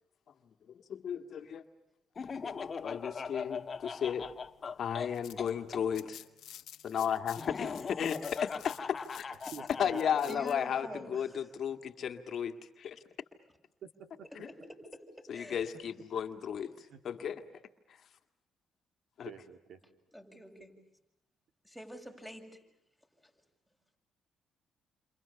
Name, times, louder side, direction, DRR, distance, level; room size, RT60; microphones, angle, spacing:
voice 1, 0.7-1.6 2.4-4.3 4.8-6.2 6.8-9.3 9.8-13.0 14.3-14.5 15.3-17.4 17.9-18.0 19.2-19.3, left 8 dB, 60° left, 7 dB, 1.8 m, -35 dB
Laughter, 2.2-5.8 7.4-10.3, left 5 dB, 40° left, 1.3 m, -40 dB
sound 1, 4.9-10.5, left 12 dB, 80° left, 1.4 m, -52 dB
voice 2, 9.5-10.0 10.2-10.4 10.9-11.0 13.8-14.3 16.8-17.0 19.2-19.8, right 7 dB, 65° right, 8 dB, 2.7 m, -48 dB
voice 3, 10.2-11.5 14.3-15.6 20.1-20.8 21.6-22.5 23.2-23.3, equal, 5° right, 3 dB, 6.8 m, -47 dB
29.0 x 27.5 x 7.0 m, 0.89 s
cardioid pair, 90°, 0 cm